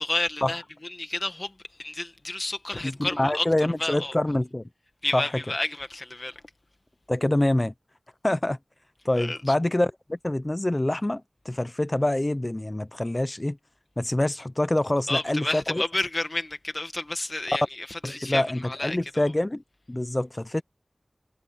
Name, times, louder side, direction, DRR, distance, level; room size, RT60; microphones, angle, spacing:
voice 1, 0.0-1.5 1.8-3.5 3.8-4.1 5.0-6.4 9.2-9.4 15.1-19.0, left 2 dB, 45° left, 1.8 m, -30 dB
voice 2, 2.8-4.6 5.1-5.3 7.1-7.7 8.2-8.6 9.0-13.6 14.0-15.8 18.0-19.6 19.9-20.6, left 1 dB, 30° left, 0.7 m, -26 dB
wide cardioid pair, 55°, 0 cm